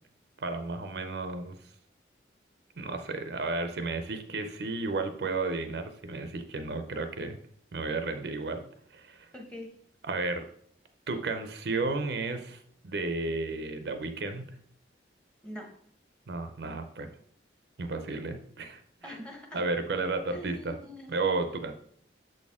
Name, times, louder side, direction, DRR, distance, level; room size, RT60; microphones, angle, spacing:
voice 1, 0.4-1.6 2.8-7.4 7.7-9.3 10.1-10.4 11.1-12.6 12.8-14.5 16.3-17.1 17.8-19.2 19.5-20.7 21.1-21.7, right 3 dB, 65° right, 8 dB, 0.5 m, -33 dB
voice 2, 9.3-9.7 15.4-15.7 19.0-19.6 20.3-21.2, left 1 dB, 5° left, 1 dB, 1.0 m, -43 dB
6.4 x 4.2 x 3.5 m, 0.65 s
head